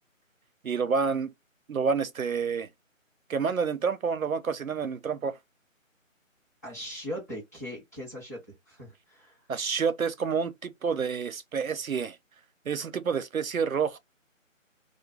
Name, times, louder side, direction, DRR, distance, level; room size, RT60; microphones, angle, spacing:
voice 1, 0.6-1.3 1.7-2.7 3.3-5.4 9.5-12.2 12.7-14.0, right 6 dB, 90° right, 0.6 m, -28 dB
voice 2, 6.6-9.4, equal, 15° left, 0.9 m, -40 dB
2.2 x 2.2 x 3.1 m
figure-of-eight pair, 155°, 40 cm